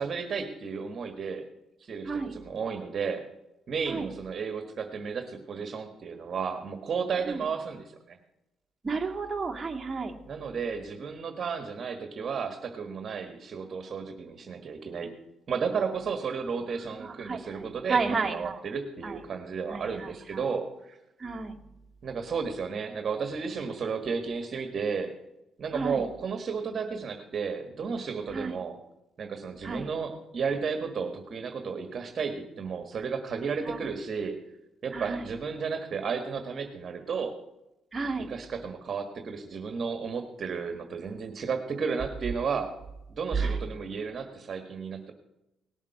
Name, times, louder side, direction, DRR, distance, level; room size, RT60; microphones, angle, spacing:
voice 1, 0.0-1.4 1.8-3.2 3.7-8.2 10.3-15.1 15.5-21.0 22.0-25.1 25.6-28.8 29.2-34.3 34.8-37.3 38.3-42.7 43.1-45.1, right 5 dB, 50° right, 6 dB, 1.5 m, -33 dB
voice 2, 8.8-10.1 16.8-18.6 19.0-19.2 19.7-20.4 21.2-21.6 25.7-26.0 28.3-28.6 29.6-29.9 33.6-33.9 34.9-35.3 37.9-38.3 43.3-43.6, right 4 dB, 25° right, 1 dB, 1.9 m, -32 dB
18.5 x 7.3 x 5.8 m, 0.91 s
cardioid pair, 90°, 0 cm